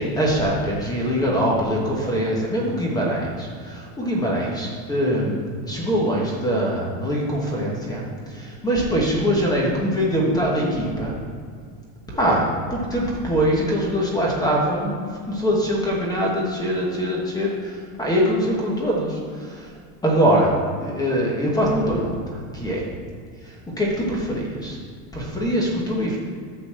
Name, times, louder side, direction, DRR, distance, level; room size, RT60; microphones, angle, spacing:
voice 1, 0.0-11.1 12.1-19.7 20.0-20.5 20.8-22.8 23.4-24.8 25.1-26.2, equal, 10° left, -3 dB, 1.1 m, -23 dB
10.0 x 4.0 x 7.3 m, 2.1 s
cardioid pair, 175°, 47 cm